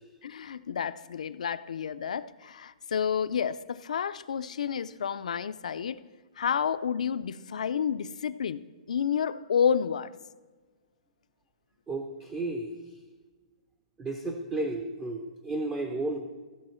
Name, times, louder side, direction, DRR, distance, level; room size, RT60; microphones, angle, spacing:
voice 1, 0.2-6.0 6.4-8.6 8.9-10.1, left 7 dB, 80° left, 14 dB, 0.4 m, -30 dB
voice 2, 11.9-12.7 14.0-16.2, right 2 dB, 10° right, 5 dB, 0.4 m, -33 dB
15.5 x 6.3 x 4.4 m, 1.3 s
hypercardioid pair, 175°, 4 cm